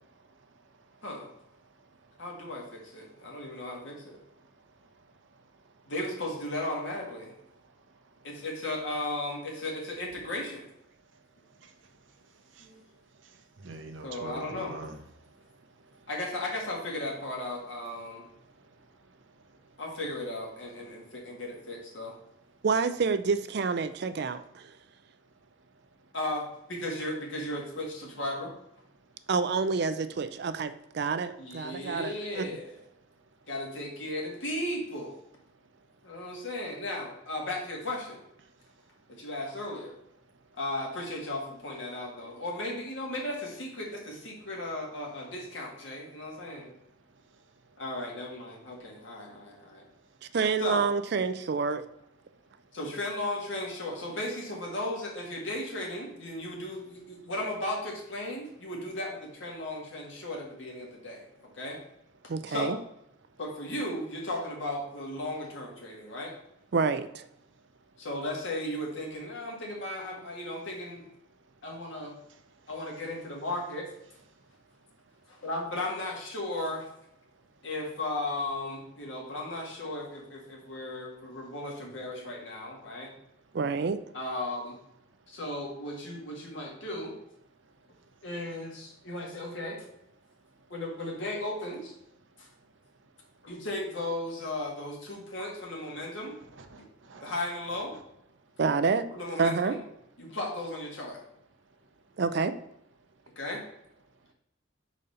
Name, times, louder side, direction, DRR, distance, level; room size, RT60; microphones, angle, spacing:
voice 1, 2.2-4.2 5.9-7.3 8.2-10.7 12.6-12.8 14.0-14.8 16.1-18.2 19.8-22.2 26.1-28.5 31.4-32.8 33.5-35.2 36.0-38.2 39.1-40.0 40.6-46.7 47.8-49.8 50.6-50.9 52.7-61.3 61.5-61.8 62.5-62.8 63.4-66.3 68.0-71.0 71.6-72.1 72.7-73.9 75.3-76.9 77.6-83.1 84.1-84.8 85.3-87.1 88.2-89.8 90.7-91.9 92.4-92.5 93.4-96.3 97.2-97.9 99.1-99.8 100.2-101.2 103.4-103.6, left 1 dB, 75° left, -1 dB, 1.9 m, -36 dB
voice 2, 13.6-14.9 96.6-97.2, right 2 dB, 75° right, 6 dB, 0.8 m, -43 dB
voice 3, 22.6-24.7 29.3-32.4 50.3-51.8 62.3-62.8 66.7-67.3 83.5-84.0 98.6-99.0 99.4-99.7 102.2-102.5, right 5 dB, 60° right, 11 dB, 0.4 m, -28 dB
5.0 x 4.2 x 5.4 m, 0.77 s
head